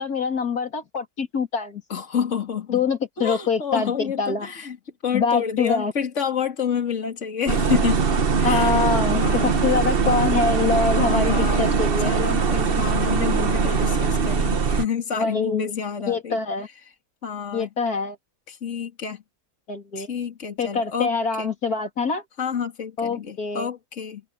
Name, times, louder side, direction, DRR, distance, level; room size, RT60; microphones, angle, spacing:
voice 1, 0.0-1.8 2.7-4.5 5.1-5.9 8.4-12.1 15.1-15.7 16.1-16.7 17.5-18.2 19.7-20.1 20.6-22.2 23.0-23.7, left 5 dB, 70° left, 3.2 m, -24 dB
voice 2, 1.9-2.8 3.2-4.8 5.0-8.1 8.4-8.8 9.1-9.5 10.9-11.8 12.0-16.4 17.2-17.7 18.5-19.2 20.0-21.1 21.4-21.5 22.4-24.2, left 7 dB, 50° left, 2.7 m, -28 dB
sound 1, 7.5-14.9, right 5 dB, 40° right, 1.3 m, -21 dB
omnidirectional pair, 1.6 m